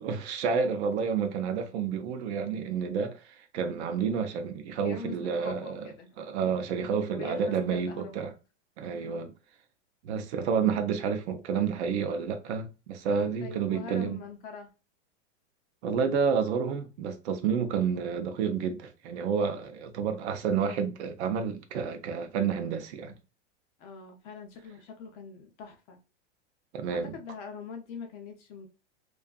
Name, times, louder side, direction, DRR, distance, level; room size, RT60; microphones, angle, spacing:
voice 1, 0.0-5.8 6.2-8.3 8.8-9.3 10.0-14.2 15.8-23.1 26.7-27.1, right 6 dB, 65° right, 0.6 m, -30 dB
voice 2, 4.8-6.2 7.1-8.3 8.9-9.3 13.4-14.7 23.8-26.0 26.9-28.7, left 4 dB, 30° left, 0.4 m, -43 dB
2.6 x 2.3 x 2.2 m
supercardioid pair, 140°, 36 cm